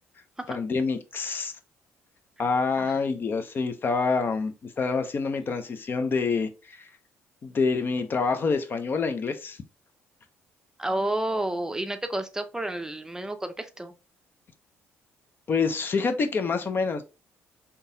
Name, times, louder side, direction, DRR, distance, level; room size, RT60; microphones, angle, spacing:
voice 1, 0.5-1.5 2.4-6.9 7.4-9.6 15.5-17.0, left 4 dB, 40° left, 0.5 m, -27 dB
voice 2, 10.8-13.9, right 1 dB, 10° right, 0.5 m, -30 dB
3.7 x 2.8 x 2.6 m
cardioid pair, 90°, 5 cm